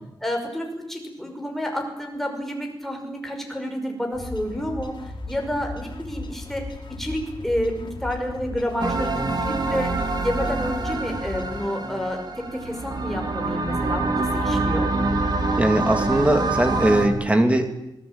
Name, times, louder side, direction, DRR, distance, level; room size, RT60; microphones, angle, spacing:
voice 1, 0.2-6.7 7.0-9.9 10.2-14.9, equal, 5° left, 3 dB, 5.8 m, -29 dB
sound 1, 4.1-11.6, left 2 dB, 65° left, 4.2 m, -37 dB
sound 2, 8.8-17.1, right 3 dB, 55° right, 3.7 m, -25 dB
voice 2, 15.6-17.7, right 1 dB, 15° right, 6 dB, 3.1 m, -20 dB
27.0 x 18.5 x 9.1 m, 0.85 s
wide cardioid pair, 145°, 9 cm